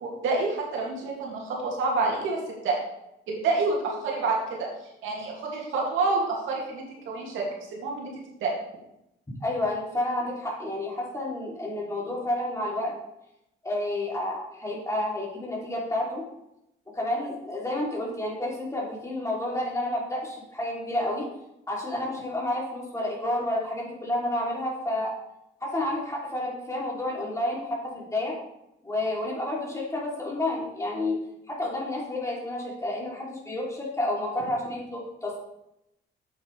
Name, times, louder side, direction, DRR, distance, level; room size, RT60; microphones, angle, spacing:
voice 1, 0.0-2.8 3.3-4.7 5.0-8.1 8.4-8.5, right 3 dB, 85° right, -2 dB, 2.4 m, -28 dB
voice 2, 9.4-12.9 13.6-16.2 16.9-21.3 21.7-25.1 25.6-28.4 28.8-31.2 31.5-35.4, left 1 dB, 15° left, -4 dB, 3.0 m, -30 dB
8.4 x 8.1 x 3.3 m, 0.85 s
cardioid pair, 90°, 20 cm